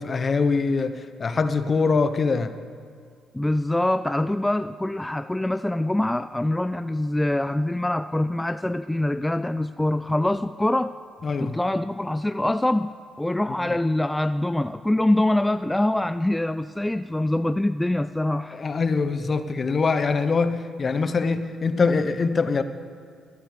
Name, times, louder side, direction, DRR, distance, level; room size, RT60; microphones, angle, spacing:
voice 1, 0.0-2.5 11.2-11.6 18.5-22.6, left 4 dB, 45° left, 0.9 m, -23 dB
voice 2, 3.3-11.0 11.4-18.6, left 1 dB, 10° left, 0.3 m, -24 dB
13.5 x 10.0 x 6.8 m
supercardioid pair, 65°, 0 cm